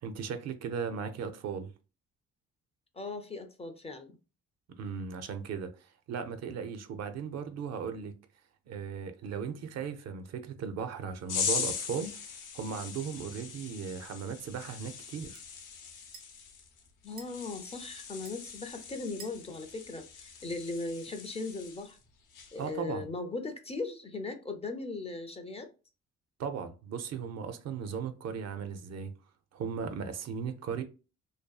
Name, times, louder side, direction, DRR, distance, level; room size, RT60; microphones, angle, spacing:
voice 1, 0.0-1.7 4.8-8.1 8.7-15.4 22.6-23.1 26.4-29.1 29.5-30.8, right 6 dB, 60° right, 0.5 m, -37 dB
voice 2, 2.9-4.1 17.0-22.0 22.5-25.7, left 3 dB, 20° left, 0.4 m, -38 dB
sound 1, 11.3-22.0 22.3-22.7, left 6 dB, 90° left, 0.7 m, -40 dB
sound 2, 13.1-20.9, right 5 dB, 85° right, 0.8 m, -58 dB
2.6 x 2.3 x 2.2 m
cardioid pair, 90°, 30 cm